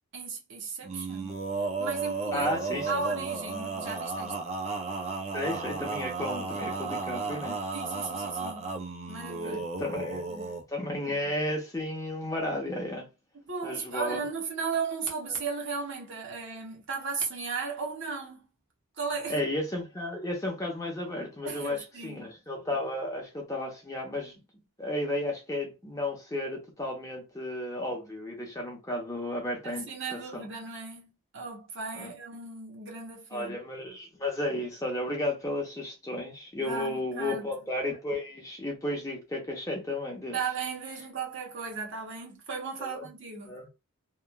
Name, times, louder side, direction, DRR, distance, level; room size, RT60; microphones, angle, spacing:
voice 1, 0.1-2.5 2.9-4.4 7.7-8.7 9.1-9.7 10.3-10.5 13.4-18.5 19.0-19.5 21.4-22.3 29.6-33.6 36.6-37.5 40.3-43.6, right 5 dB, 60° right, 0.9 m, -36 dB
Male singing, 0.8-10.6, right 4 dB, 30° right, 0.4 m, -34 dB
voice 2, 2.3-2.9 5.3-7.6 9.4-10.2 10.7-13.1 13.6-14.2 15.3-15.4 19.3-24.4 24.8-30.5 31.9-32.1 33.3-40.4 42.8-43.0 43.4-43.7, left 1 dB, 15° left, 0.8 m, -33 dB
3.0 x 2.3 x 2.2 m
head